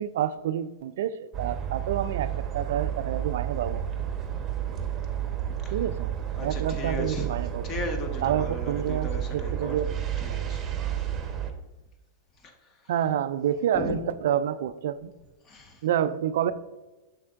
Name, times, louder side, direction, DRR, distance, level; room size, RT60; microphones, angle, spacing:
voice 1, 0.0-3.8 5.7-6.1 6.4-7.5 8.2-9.9 12.9-15.1 15.8-16.5, right 10 dB, 65° right, 0.3 m, -28 dB
sound 1, 1.3-11.5, right 10 dB, 25° right, 0.9 m, -31 dB
voice 2, 5.6-6.0 6.3-9.8 10.2-11.0 11.3-11.4 12.4-12.9 13.7-13.9 15.4-15.9, left 2 dB, 30° left, 1.3 m, -37 dB
7.3 x 6.4 x 2.4 m
hypercardioid pair, 100°, 0 cm